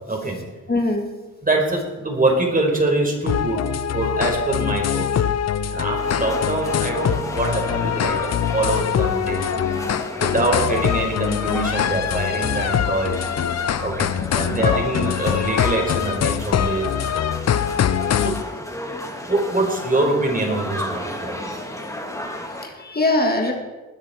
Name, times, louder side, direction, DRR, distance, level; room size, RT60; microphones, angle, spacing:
voice 1, 0.1-0.4 1.4-3.6 3.9-5.2 5.7-9.5 10.1-13.2 13.8-14.1 14.4-16.9 18.2-18.3 19.3-21.6, right 2 dB, 25° right, 1 dB, 4.8 m, -24 dB
voice 2, 0.7-1.1 3.6-3.7 8.6-8.7 13.8-14.0 14.3-14.8 18.9-19.0 22.4-23.5, left 2 dB, 30° left, 2 dB, 2.2 m, -23 dB
sound 1, 3.3-18.4, left 9 dB, 55° left, 0.6 m, -23 dB
sound 2, 6.0-22.7, left 1 dB, 10° left, 3.2 m, -33 dB
20.0 x 10.0 x 4.5 m, 1.2 s
cardioid pair, 70°, 31 cm